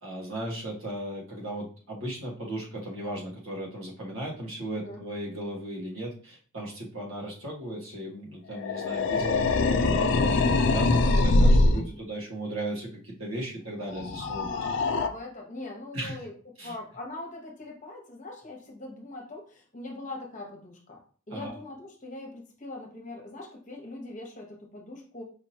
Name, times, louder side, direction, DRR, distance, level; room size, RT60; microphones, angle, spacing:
voice 1, 0.0-14.6 15.9-16.2 16.6-16.7 21.3-21.5, right 1 dB, 85° right, -3 dB, 1.5 m, -36 dB
sound 1, 8.5-11.9 13.9-15.1, left 2 dB, 60° left, 0.4 m, -23 dB
voice 2, 14.2-21.0 21.3-25.2, left 2 dB, 35° left, 1 dB, 1.0 m, -41 dB
5.0 x 3.0 x 2.8 m, 0.41 s
head